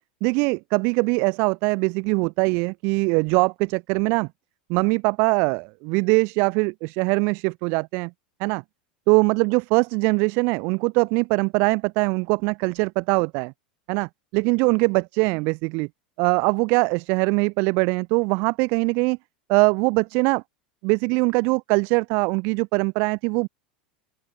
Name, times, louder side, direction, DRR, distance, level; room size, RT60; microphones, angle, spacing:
voice 1, 0.2-4.3 4.7-8.1 8.4-8.6 9.1-13.5 13.9-15.9 16.2-19.2 19.5-20.4 20.8-23.5, right 31 dB, 55° right, 0.4 m, -22 dB
open air
hypercardioid pair, 90°, 5 cm